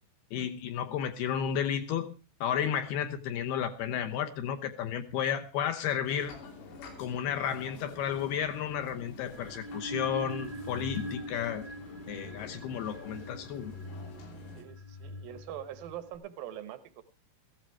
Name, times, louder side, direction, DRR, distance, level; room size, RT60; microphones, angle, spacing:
voice 1, 0.3-2.1 2.4-6.3 7.0-11.7 12.1-13.8, left 9 dB, 70° left, 7 dB, 2.5 m, -32 dB
sound 1, 6.0-14.6, left 3 dB, 90° left, 5.6 m, -48 dB
sound 2, 9.3-16.1, equal, 25° left, 1.1 m, -43 dB
voice 2, 14.5-17.0, right 11 dB, 70° right, 12 dB, 2.2 m, -43 dB
15.5 x 14.0 x 4.6 m, 0.32 s
omnidirectional pair, 5.5 m